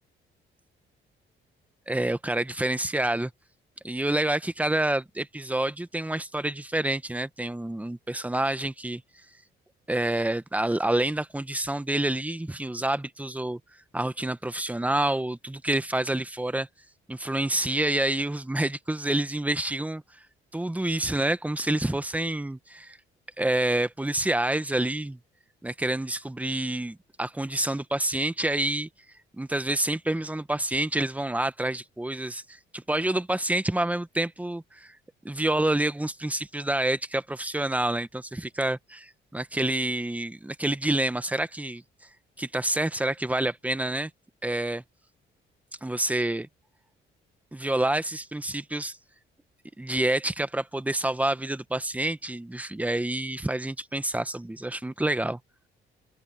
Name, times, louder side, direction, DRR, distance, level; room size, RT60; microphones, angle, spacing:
voice 1, 1.9-3.3 3.8-9.0 9.9-13.6 13.9-16.7 17.1-20.0 20.5-23.0 23.4-25.2 25.6-28.9 29.3-35.0 35.2-41.8 42.4-44.1 44.4-44.8 45.8-46.5 47.5-49.0 49.8-55.4, right 1 dB, 5° right, 1.2 m, -28 dB
open air
cardioid pair, 90°, 20 cm